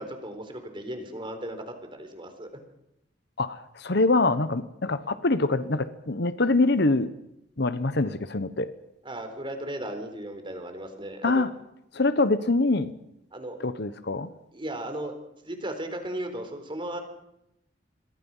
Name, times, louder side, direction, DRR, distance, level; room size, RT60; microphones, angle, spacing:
voice 1, 0.0-2.5 9.0-11.4 13.3-13.6 14.5-15.1 15.4-17.0, right 1 dB, 30° right, 6 dB, 4.2 m, -36 dB
voice 2, 3.4-7.1 7.6-8.7 11.2-11.5 11.9-13.0 13.6-14.3, left 2 dB, 65° left, 13 dB, 1.2 m, -24 dB
27.5 x 22.5 x 5.7 m, 0.84 s
head